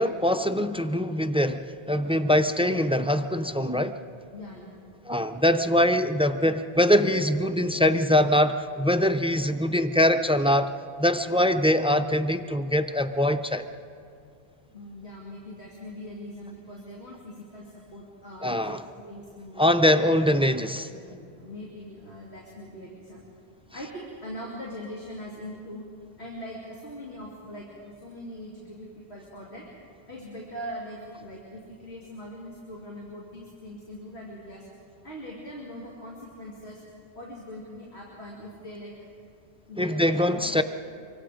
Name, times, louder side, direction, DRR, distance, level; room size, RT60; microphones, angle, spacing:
voice 1, 0.0-3.9 5.1-10.7 11.0-13.6 18.4-18.8 19.6-20.9 39.8-40.6, left 1 dB, 10° right, 10 dB, 0.3 m, -23 dB
voice 2, 4.3-5.0 14.7-19.7 20.7-23.2 23.7-25.9 26.2-29.7 30.1-34.7 35.0-36.8 37.1-39.0 39.7-40.6, equal, 90° left, -4 dB, 3.1 m, -41 dB
25.0 x 24.5 x 5.1 m, 2.4 s
omnidirectional pair, 1.1 m